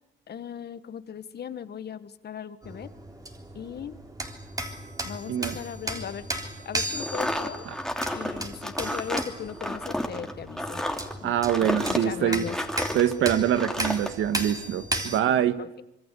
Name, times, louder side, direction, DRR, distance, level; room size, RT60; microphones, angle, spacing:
voice 1, 0.3-2.9 3.5-4.0 5.0-6.3 6.6-7.6 8.1-10.8 11.2-11.3 11.7-12.6 15.6-15.8, left 8 dB, 55° left, 13 dB, 1.6 m, -38 dB
sound 1, 2.6-15.2, right 1 dB, 20° right, 3.6 m, -35 dB
sound 2, 7.0-13.1 13.5-14.1, left 1 dB, 5° left, 2.8 m, -31 dB
voice 2, 11.2-12.5 12.9-15.6, right 10 dB, 80° right, 11 dB, 1.7 m, -24 dB
25.5 x 23.0 x 8.4 m, 0.86 s
cardioid pair, 90°, 20 cm